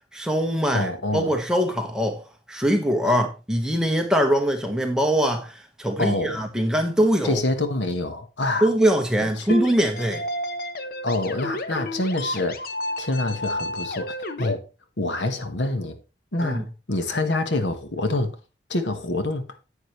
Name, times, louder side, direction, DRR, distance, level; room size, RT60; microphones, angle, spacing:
voice 1, 0.1-7.4 8.6-10.2 16.4-16.7, equal, 5° right, 1.4 m, -23 dB
voice 2, 0.7-1.3 6.0-6.4 7.2-8.7 9.4-9.5 11.0-12.6 13.0-14.6 15.0-16.0 16.3-16.6 16.9-18.3 18.7-19.5, left 2 dB, 80° left, 1.3 m, -26 dB
sound 1, 9.5-14.5, left 1 dB, 50° left, 0.9 m, -31 dB
9.8 x 8.8 x 3.2 m
head